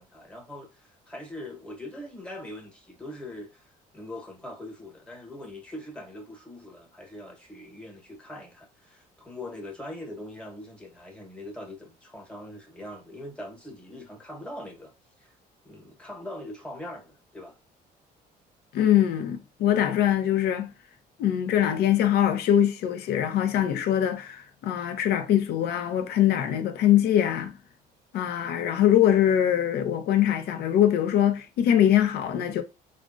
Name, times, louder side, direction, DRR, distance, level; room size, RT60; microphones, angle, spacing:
voice 1, 0.0-14.9 15.2-15.3 15.6-17.6, left 1 dB, 5° left, 1.1 m, -42 dB
voice 2, 18.7-20.7 21.2-27.5 28.1-32.6, left 10 dB, 70° left, 0.6 m, -23 dB
3.4 x 2.0 x 2.5 m
cardioid pair, 110°, 17 cm